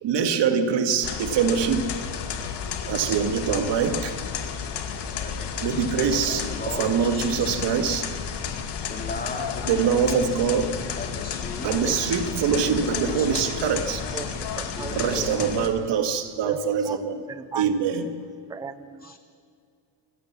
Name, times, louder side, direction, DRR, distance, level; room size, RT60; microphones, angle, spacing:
voice 1, 0.0-2.0 2.9-4.2 5.6-6.5 6.8-8.1 9.7-10.8 11.6-14.0 14.9-17.2 17.6-18.2, right 6 dB, 60° right, 8 dB, 2.0 m, -24 dB
sound 1, 1.0-15.7, left 7 dB, 55° left, 2.2 m, -32 dB
voice 2, 4.9-5.9 6.3-7.9 8.2-10.2 11.0-12.0 12.3-13.7 14.7-15.2 17.9-18.1 19.0-19.2, left 3 dB, 20° left, 3 dB, 2.7 m, -39 dB
voice 3, 11.6-12.0 12.5-12.9 14.1-15.4 15.9-16.2 16.4-17.0 17.3-17.9 18.5-19.2, right 5 dB, 10° right, 13 dB, 0.5 m, -38 dB
27.5 x 15.5 x 7.5 m, 2.4 s
cardioid pair, 150°, 48 cm